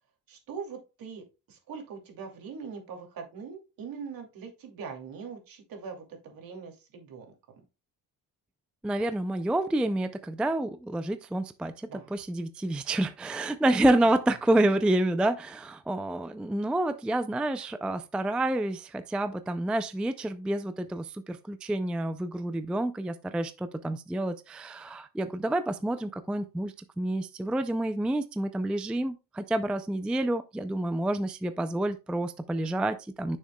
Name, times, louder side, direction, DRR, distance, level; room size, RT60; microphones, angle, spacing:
voice 1, 0.3-7.3 11.9-12.1 14.0-14.1 14.6-14.8, right 5 dB, 60° right, 2.6 m, -42 dB
voice 2, 8.8-11.7 12.1-33.4, right 1 dB, 5° right, 0.3 m, -28 dB
9.3 x 6.5 x 2.2 m
cardioid pair, 125°, 38 cm